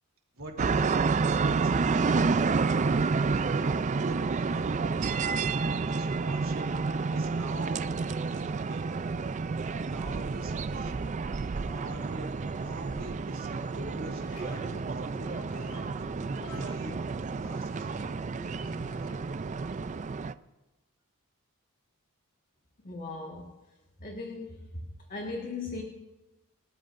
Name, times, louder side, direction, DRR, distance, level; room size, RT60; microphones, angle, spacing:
voice 1, 0.3-4.7 5.7-8.8 9.8-11.0 11.6-12.3 12.6-16.1 16.5-17.0 17.3-17.9, right 1 dB, 65° right, 1 dB, 3.1 m, -44 dB
sound 1, 0.6-20.3, right 4 dB, 35° right, 0.4 m, -30 dB
sound 2, 13.6-19.9, left 1 dB, 85° left, 1.8 m, -47 dB
voice 2, 22.8-23.5 24.0-24.6 25.1-25.8, left 3 dB, 40° left, 0 dB, 1.7 m, -37 dB
29.5 x 14.0 x 2.6 m, 1.1 s
head